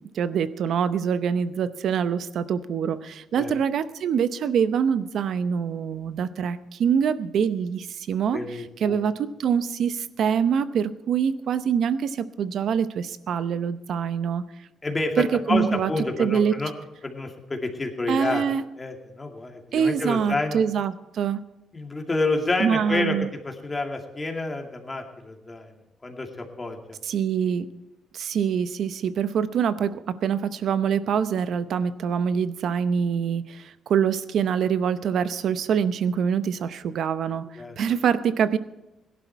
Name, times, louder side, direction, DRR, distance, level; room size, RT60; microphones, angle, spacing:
voice 1, 0.1-8.4 8.8-14.4 15.2-15.9 16.2-16.5 18.1-18.6 19.7-21.4 22.6-23.3 27.0-27.7 28.1-37.4 37.8-38.6, right 7 dB, 70° right, 13 dB, 0.7 m, -25 dB
voice 2, 8.3-9.0 14.8-16.7 17.0-20.6 21.7-23.2 23.4-25.7 26.0-27.0 37.6-37.7, left 2 dB, 20° left, 2 dB, 2.4 m, -29 dB
17.5 x 11.5 x 4.6 m, 0.95 s
cardioid pair, 90°, 0 cm